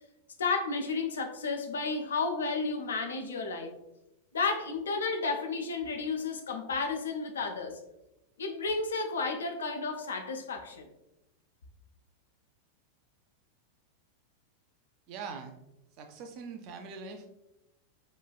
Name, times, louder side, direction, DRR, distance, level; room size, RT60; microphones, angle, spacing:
voice 1, 0.4-3.7 4.3-7.8 8.4-10.9, left 4 dB, 65° left, 5 dB, 0.3 m, -32 dB
voice 2, 15.1-15.6 15.9-17.3, right 5 dB, 40° right, 6 dB, 0.4 m, -42 dB
3.0 x 2.2 x 2.2 m, 0.88 s
figure-of-eight pair, 90°, 0 cm